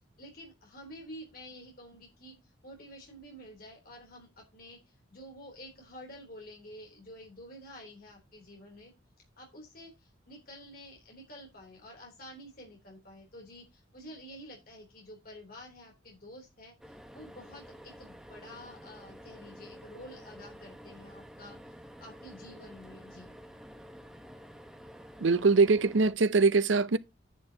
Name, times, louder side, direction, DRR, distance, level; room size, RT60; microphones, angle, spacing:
voice 1, 0.2-2.4 2.6-4.8 5.1-8.9 9.4-9.9 10.3-16.7 17.1-21.6 22.0-23.3, equal, 50° left, 3.4 m, -49 dB
sound 1, 16.8-26.1, equal, 5° right, 1.2 m, -50 dB
voice 2, 25.2-27.0, right 4 dB, 80° right, 0.6 m, -23 dB
10.0 x 9.8 x 2.9 m
head